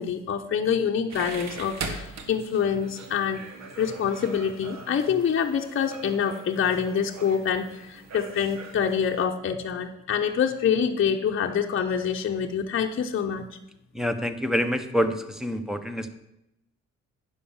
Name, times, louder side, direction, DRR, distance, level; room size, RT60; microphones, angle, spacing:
voice 1, 0.0-3.4 3.8-13.5, left 7 dB, 45° left, 3 dB, 0.8 m, -26 dB
sound 1, 1.1-9.2, right 4 dB, 60° right, 1.4 m, -41 dB
voice 2, 13.9-16.2, equal, ahead, 9 dB, 0.9 m, -27 dB
10.0 x 5.4 x 7.1 m, 0.86 s
cardioid pair, 90°, 30 cm